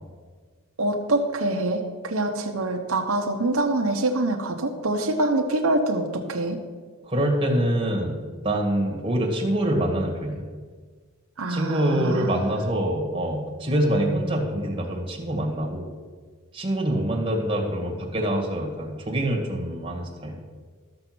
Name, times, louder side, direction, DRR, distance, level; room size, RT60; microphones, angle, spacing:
voice 1, 0.8-6.6 11.4-12.6, right 2 dB, 80° right, 2 dB, 1.0 m, -25 dB
voice 2, 7.1-8.2 8.4-10.4 11.5-15.9 16.5-20.4, right 1 dB, 25° right, 0 dB, 2.0 m, -25 dB
13.0 x 7.0 x 6.1 m, 1.5 s
head